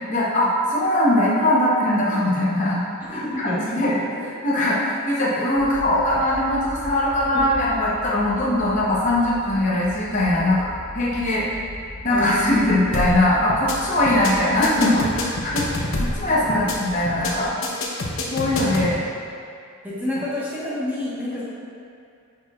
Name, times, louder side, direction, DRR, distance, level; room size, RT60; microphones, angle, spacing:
voice 1, 0.1-2.8 3.1-4.0 4.2-10.7 10.9-11.5 12.0-15.7 16.0-17.5 18.3-18.9, left 1 dB, 35° left, -7 dB, 0.8 m, -21 dB
voice 2, 3.1-3.6 10.4-10.5 12.1-12.7 16.4-16.6 18.7-19.0 19.8-21.4, left 1 dB, 10° right, -9 dB, 1.2 m, -29 dB
sound 1, 5.5-17.5, left 1 dB, 90° left, 1.3 m, -39 dB
sound 2, 12.9-13.2 13.5-13.8 14.1-14.3 14.6-16.2 16.5-16.8 17.1-17.3 17.6-18.9, left 2 dB, 65° left, 0.8 m, -26 dB
9.6 x 4.7 x 2.4 m, 2.4 s
head